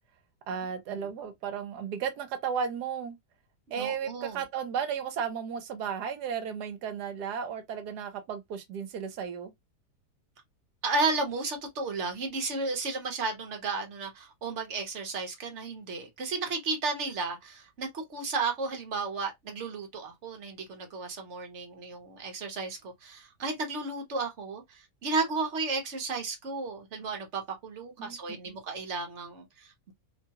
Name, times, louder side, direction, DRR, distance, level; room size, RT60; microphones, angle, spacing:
voice 1, 0.5-3.2 3.7-9.5 28.0-28.6, right 7 dB, 75° right, 1.2 m, -34 dB
voice 2, 3.7-4.4 10.8-29.9, right 3 dB, 50° right, 1.1 m, -33 dB
3.0 x 2.2 x 2.8 m
omnidirectional pair, 1.8 m